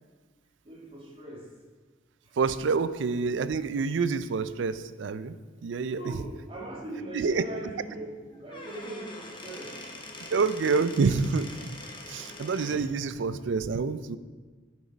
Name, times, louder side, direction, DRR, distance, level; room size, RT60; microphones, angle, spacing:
voice 1, 0.6-1.5 2.2-2.4 5.9-9.8, right 1 dB, 30° right, -3 dB, 1.8 m, -40 dB
voice 2, 2.4-6.0 7.1-7.4 10.3-11.6 12.1-14.2, right 4 dB, 75° right, 14 dB, 0.4 m, -27 dB
Squeak / Wood, 8.3-12.9, left 2 dB, 25° left, 1.1 m, -43 dB
10.5 x 6.2 x 4.0 m, 1.4 s
head